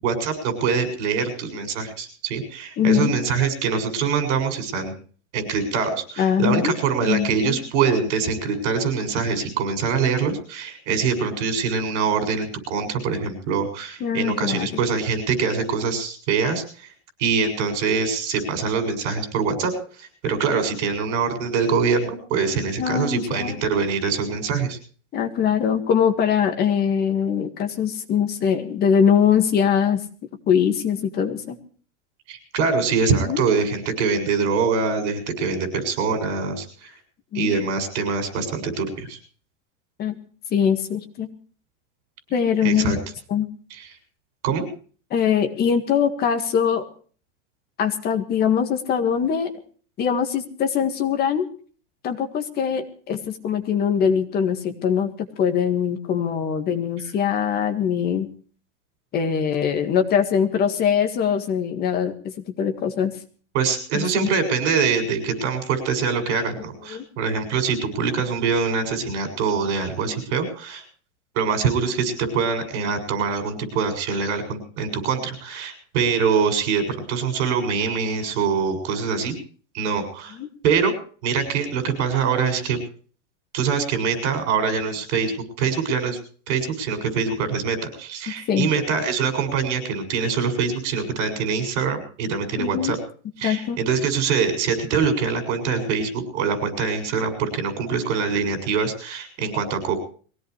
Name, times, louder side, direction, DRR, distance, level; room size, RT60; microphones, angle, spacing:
voice 1, 0.0-4.9 5.3-16.9 17.2-19.7 20.0-24.8 32.3-36.9 37.3-39.2 42.6-43.0 43.8-43.9 44.4-44.6 63.5-70.8 71.3-79.4 79.7-80.4 80.6-80.9 81.2-82.8 83.5-86.2 86.5-93.0 93.4-99.9, right 5 dB, 60° right, 8 dB, 6.9 m, -24 dB
voice 2, 2.8-3.1 6.2-6.7 7.0-7.6 14.0-14.7 22.8-23.6 25.1-30.0 30.5-31.6 33.2-33.4 37.3-37.6 40.0-40.2 40.5-41.3 42.3-43.0 43.3-43.5 45.1-46.8 47.8-49.5 50.0-51.5 52.0-58.3 59.1-63.1 63.9-64.3 66.9-67.0 80.3-80.5 88.5-88.7 92.6-92.9 93.4-93.8, left 8 dB, 25° left, 6 dB, 1.9 m, -22 dB
23.0 x 17.0 x 3.2 m, 0.42 s
supercardioid pair, 170°, 38 cm